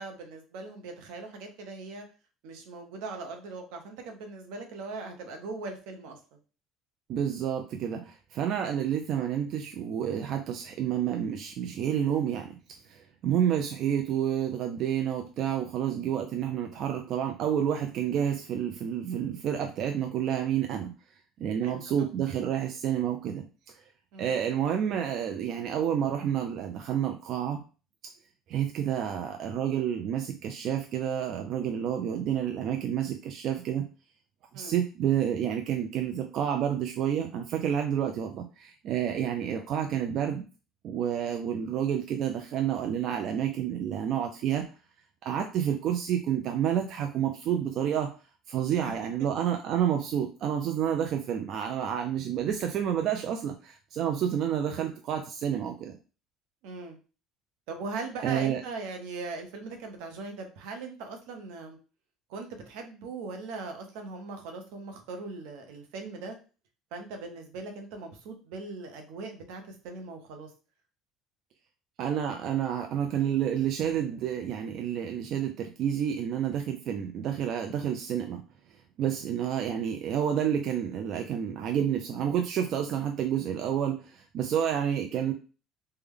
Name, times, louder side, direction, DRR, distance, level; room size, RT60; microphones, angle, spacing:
voice 1, 0.0-2.0 2.4-6.2 8.6-8.8 21.6-21.8 24.1-24.4 34.5-34.8 48.8-49.1 56.6-57.0 57.7-61.8 62.3-66.4 66.9-70.5, right 3 dB, 80° right, 4 dB, 0.8 m, -40 dB
voice 2, 7.1-20.9 21.4-23.8 24.2-27.6 28.5-33.9 34.5-40.4 40.8-44.7 45.2-48.1 48.5-56.0 58.2-58.6 72.0-78.4 79.0-85.3, right 9 dB, 55° right, 4 dB, 0.4 m, -29 dB
3.3 x 2.2 x 3.5 m, 0.34 s
cardioid pair, 130°, 0 cm